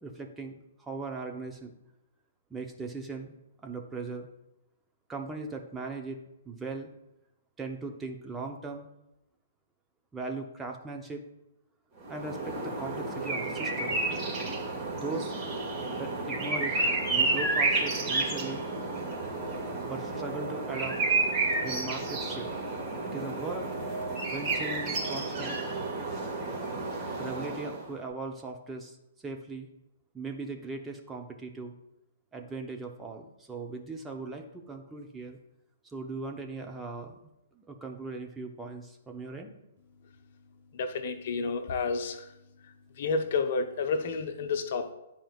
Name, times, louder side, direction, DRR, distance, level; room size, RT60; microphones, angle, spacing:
voice 1, 0.0-1.7 2.5-3.3 3.6-4.3 5.1-6.2 6.5-6.9 7.6-8.9 10.1-11.2 12.1-14.0 14.9-15.3 16.0-16.7 17.1-18.6 19.8-21.0 21.6-22.5 23.0-23.7 24.3-25.6 27.2-29.0 29.2-29.7 30.1-31.7 32.3-35.4 35.8-37.2 37.5-39.5, right 3 dB, 10° right, 2 dB, 0.7 m, -39 dB
sound 1, 12.0-27.9, right 3 dB, 30° right, 1.8 m, -31 dB
voice 2, 40.8-42.2 43.0-44.9, left 4 dB, 55° left, 6 dB, 0.7 m, -30 dB
10.0 x 4.3 x 2.4 m, 0.91 s
figure-of-eight pair, 120°, 0 cm